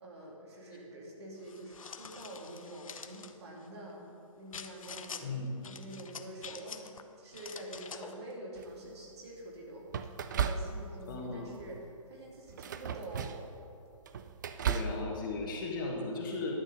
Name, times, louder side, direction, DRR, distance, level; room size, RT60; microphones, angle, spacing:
voice 1, 0.0-4.0 4.4-5.4 5.6-9.9 10.3-13.4 14.5-14.6, right 1 dB, 50° right, -2 dB, 2.6 m, -46 dB
sound 1, 1.5-3.3 4.5-5.2 5.6-7.0 7.3-8.2, left 6 dB, 70° left, 0.7 m, -46 dB
voice 2, 5.2-5.5 7.9-8.0 11.1-11.6 14.6-16.6, left 3 dB, 35° left, -1 dB, 1.6 m, -37 dB
sound 2, 8.6-9.0 9.9-11.1 11.5-11.8 12.5-13.5 13.9-15.0, right 7 dB, 35° right, 0.4 m, -35 dB
11.5 x 7.0 x 5.3 m, 2.6 s
hypercardioid pair, 155°, 18 cm